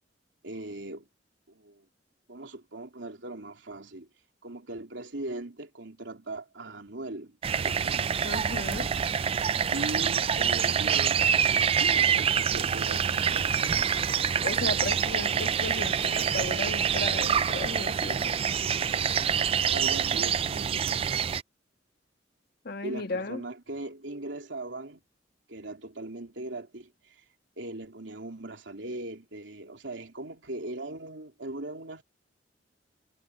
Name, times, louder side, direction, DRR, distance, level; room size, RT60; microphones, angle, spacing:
voice 1, 0.4-1.1 1.5-1.9 2.3-4.1 4.4-7.4 7.6-8.1 9.7-11.5 11.8-13.7 19.7-21.0 22.8-25.0 25.5-27.2 27.6-32.0, right 2 dB, 80° right, 3.1 m, -39 dB
sound 1, 7.4-21.4, right 7 dB, 30° right, 0.3 m, -26 dB
voice 2, 8.2-8.9 14.4-18.3 22.6-23.4, left 2 dB, 55° left, 1.5 m, -35 dB
head